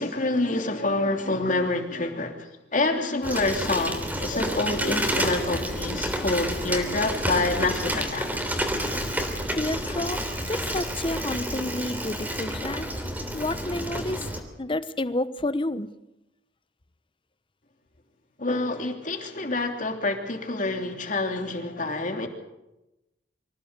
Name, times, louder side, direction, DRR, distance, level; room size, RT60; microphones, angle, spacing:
voice 1, 0.0-8.3 18.4-22.3, left 2 dB, 45° left, 4 dB, 3.2 m, -27 dB
Bicycle, 3.2-14.4, equal, 10° right, 3.2 m, -29 dB
voice 2, 9.5-12.9 13.3-14.3 14.6-15.9, left 2 dB, 30° left, 14 dB, 0.9 m, -30 dB
25.0 x 16.0 x 8.2 m, 0.94 s
head